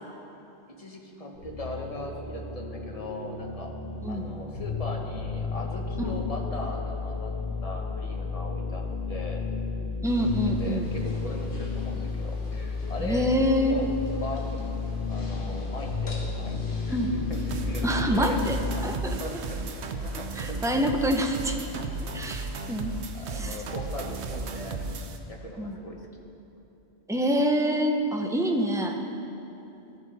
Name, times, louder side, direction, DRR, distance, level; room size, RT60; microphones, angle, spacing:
voice 1, 0.8-3.7 4.1-7.3 7.6-8.8 9.1-9.4 10.1-10.3 10.6-13.3 13.6-13.9 14.2-14.7 15.1-17.9 18.1-18.4 18.7-19.6 20.0-20.9 21.5-22.4 23.1-25.0 25.3-26.0, left 1 dB, 35° left, 1 dB, 0.9 m, -39 dB
sound 1, 1.3-18.7, left 4 dB, 85° left, 2.7 m, -33 dB
sound 2, 10.0-18.5, left 1 dB, 55° left, 1.4 m, -48 dB
voice 2, 10.0-10.9 13.0-13.8 16.9-17.1 17.8-18.6 18.8-19.1 20.4-21.6 22.1-23.0 23.3-23.6 25.6-25.8 27.1-29.0, equal, 5° right, 3 dB, 0.3 m, -26 dB
sound 3, 17.3-25.2, right 3 dB, 85° right, 1.0 m, -35 dB
14.0 x 6.2 x 4.0 m, 2.9 s
omnidirectional pair, 1.1 m